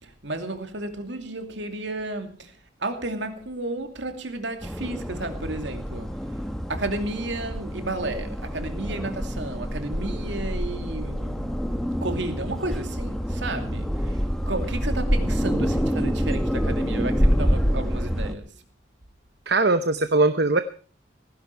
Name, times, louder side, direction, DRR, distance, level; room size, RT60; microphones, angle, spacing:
voice 1, 0.0-2.5 2.8-6.2 6.7-11.6 12.0-18.5, right 2 dB, 75° right, 2.6 m, -32 dB
sound 1, 4.6-18.3, equal, ahead, 1.2 m, -27 dB
voice 2, 19.5-20.6, right 3 dB, 60° right, 0.9 m, -20 dB
17.5 x 16.0 x 4.6 m
head